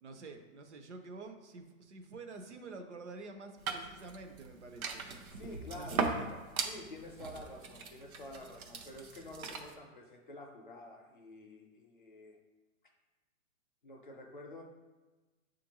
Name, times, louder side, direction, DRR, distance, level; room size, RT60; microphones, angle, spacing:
voice 1, 0.0-5.1 5.7-6.3, right 3 dB, 55° right, 6 dB, 0.6 m, -48 dB
sound 1, 3.6-9.7, right 4 dB, 90° right, 0.8 m, -39 dB
voice 2, 5.3-12.4 13.8-14.6, left 1 dB, 40° left, 1 dB, 0.5 m, -49 dB
6.8 x 2.5 x 2.9 m, 1.2 s
hypercardioid pair, 180°, 42 cm